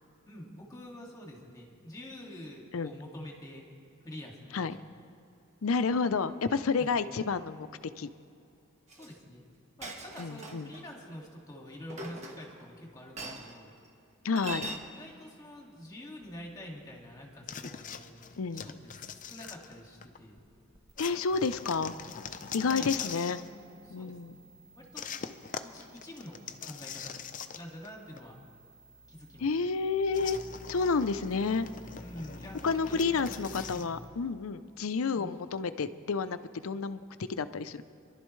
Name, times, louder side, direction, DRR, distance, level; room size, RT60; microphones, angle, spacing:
voice 1, 0.3-3.7 4.0-4.7 6.8-7.0 8.9-9.4 9.8-13.7 14.9-18.1 18.6-20.5 22.6-24.4 24.7-25.1 25.6-27.2 27.5-28.4 29.1-29.6 32.0-33.9 35.1-35.3, left 1 dB, 20° left, -1 dB, 2.1 m, -47 dB
voice 2, 5.6-7.7 8.0-8.1 10.2-10.7 14.2-14.7 18.4-18.7 21.0-21.9 22.5-23.4 23.9-24.4 29.4-30.4 30.7-31.7 32.6-37.8, left 4 dB, 85° left, 12 dB, 0.6 m, -30 dB
Chink clink, 8.9-9.1 9.8-10.8 11.9-12.7 13.2-13.5 14.4-14.8, right 1 dB, 35° right, 1.3 m, -41 dB
sound 1, 16.2-34.1, equal, 15° right, 0.6 m, -54 dB
sound 2, 17.5-20.2 21.0-23.5 25.0-27.9 28.2-28.3 30.1-33.9, left 7 dB, 40° left, 0.6 m, -42 dB
27.0 x 11.5 x 3.2 m, 2.6 s
head